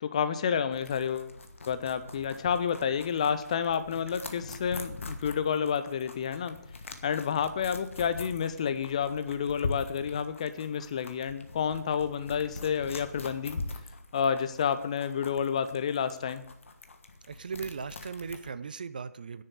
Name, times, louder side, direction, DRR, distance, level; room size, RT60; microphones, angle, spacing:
voice 1, 0.0-1.3 1.7-6.6 7.0-13.6 14.1-16.4, left 7 dB, 20° left, 11 dB, 0.5 m, -30 dB
sound 1, 0.7-18.5, left 3 dB, 50° left, 1.4 m, -43 dB
voice 2, 17.3-19.4, right 5 dB, 30° right, 14 dB, 0.4 m, -38 dB
10.5 x 7.6 x 7.7 m, 0.82 s
figure-of-eight pair, 150°, 9 cm